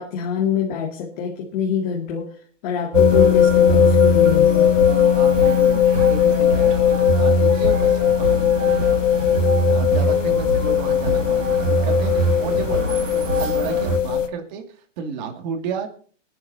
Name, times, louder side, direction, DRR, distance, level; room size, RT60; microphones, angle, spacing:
voice 1, 0.0-2.3 2.6-4.7, left 7 dB, 40° left, -2 dB, 2.6 m, -25 dB
sound 1, 2.9-14.3, left 10 dB, 90° left, 1.2 m, -18 dB
sound 2, 2.9-14.0, right 4 dB, 80° right, 2.5 m, -24 dB
voice 2, 5.1-9.1 9.7-12.8 13.1-14.6 15.0-15.9, right 6 dB, 35° right, 5 dB, 2.4 m, -32 dB
23.5 x 11.0 x 2.8 m, 0.43 s
hypercardioid pair, 155°, 37 cm